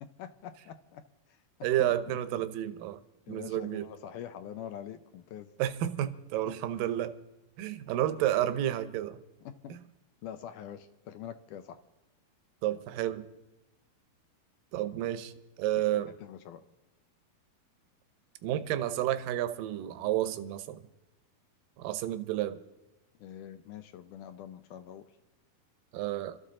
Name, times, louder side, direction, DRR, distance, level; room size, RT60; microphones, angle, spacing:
voice 1, 0.0-1.0 1.3-1.4 1.8-1.9 3.3-5.5 6.4-6.5 9.4-9.8 10.2-11.8 15.9-16.6 23.2-25.1, left 9 dB, 75° left, 2.0 m, -44 dB
voice 2, 1.6-3.0 3.3-3.9 5.6-7.1 7.6-9.2 9.7-9.8 12.6-13.3 14.7-15.3 15.6-16.2 18.4-20.9 21.8-22.6 25.9-26.4, right 12 dB, 75° right, 2.3 m, -31 dB
28.0 x 13.5 x 3.8 m
omnidirectional pair, 4.2 m